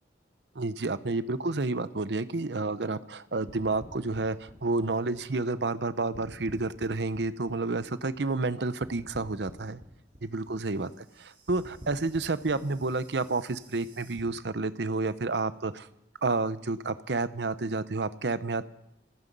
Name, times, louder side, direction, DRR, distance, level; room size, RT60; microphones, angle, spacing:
voice 1, 0.6-9.8 10.2-15.9 16.2-18.7, right 3 dB, 65° right, 14 dB, 0.7 m, -30 dB
sound 1, 3.5-5.8 6.1-8.5 8.8-14.2, equal, 35° right, 5.0 m, -50 dB
27.0 x 10.0 x 5.4 m, 0.80 s
head